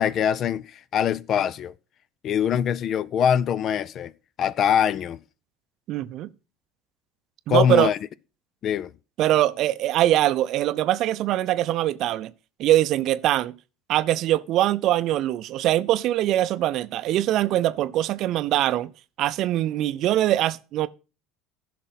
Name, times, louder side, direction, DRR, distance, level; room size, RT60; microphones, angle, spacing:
voice 1, 0.0-1.7 2.2-4.1 4.4-5.2 7.5-8.0 8.6-8.9, left 8 dB, 45° left, 0.5 m, -23 dB
voice 2, 5.9-6.3 7.5-7.9 9.2-12.3 12.6-13.5 13.9-18.9 19.2-20.9, right 13 dB, 50° right, 0.5 m, -22 dB
15.0 x 5.9 x 4.0 m
figure-of-eight pair, 65°, 0 cm